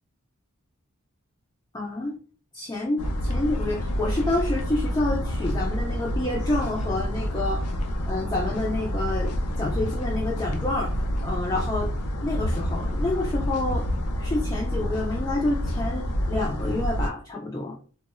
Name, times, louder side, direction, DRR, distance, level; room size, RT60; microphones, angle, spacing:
voice 1, 1.7-2.2 2.5-7.8 8.1-9.3 9.6-11.9 12.2-13.9 14.2-17.8, left 2 dB, 20° left, -1 dB, 0.3 m, -28 dB
sound 1, 3.0-17.1, equal, 85° left, 0.5 m, -28 dB
2.0 x 2.0 x 3.6 m, 0.40 s
head